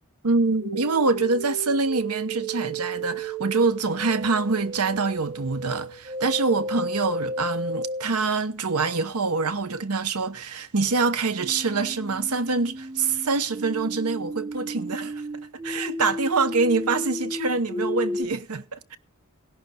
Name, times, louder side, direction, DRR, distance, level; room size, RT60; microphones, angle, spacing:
voice 1, 0.2-15.2 15.6-19.0, right 4 dB, 90° right, 1.0 m, -25 dB
sound 1, 0.6-8.0 11.3-18.2, right 1 dB, 40° right, 5.7 m, -33 dB
17.5 x 11.0 x 4.1 m
head